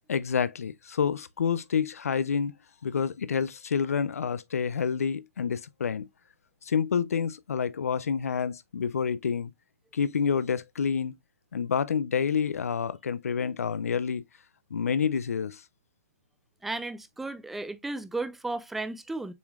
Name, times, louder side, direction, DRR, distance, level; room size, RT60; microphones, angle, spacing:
voice 1, 0.1-2.5 2.8-6.1 6.6-9.5 9.9-11.1 11.5-14.2 14.7-15.6, left 6 dB, 80° left, 0.5 m, -28 dB
voice 2, 16.6-19.3, right 2 dB, 5° right, 0.3 m, -34 dB
7.0 x 3.1 x 2.3 m
hypercardioid pair, 160°, 8 cm